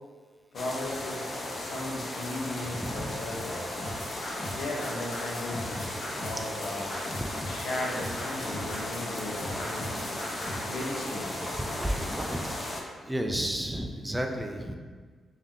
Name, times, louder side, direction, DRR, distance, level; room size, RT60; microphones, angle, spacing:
voice 1, 0.5-3.7 4.5-5.7 6.2-7.0 7.5-10.0 10.6-11.4, left 1 dB, 75° left, -3 dB, 0.8 m, -36 dB
sound 1, 0.5-12.8, left 1 dB, 35° left, 0.6 m, -36 dB
voice 2, 2.7-3.1 11.4-12.8 13.0-14.8, right 1 dB, 10° right, 3 dB, 0.4 m, -32 dB
sound 2, 3.8-10.6, left 1 dB, 90° left, 1.2 m, -38 dB
3.6 x 2.7 x 3.6 m, 1.5 s
cardioid pair, 95°, 0 cm